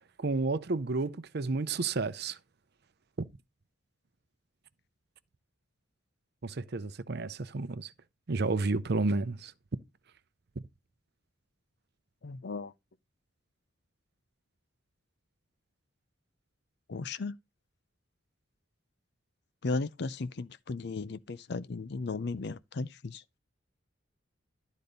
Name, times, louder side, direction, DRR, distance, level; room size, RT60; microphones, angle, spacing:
voice 1, 0.2-2.4 6.4-7.9 8.3-9.5, right 3 dB, 50° right, 0.6 m, -31 dB
voice 2, 12.2-12.7 16.9-17.4 19.6-23.2, left 3 dB, 55° left, 0.5 m, -35 dB
12.0 x 4.1 x 5.2 m
head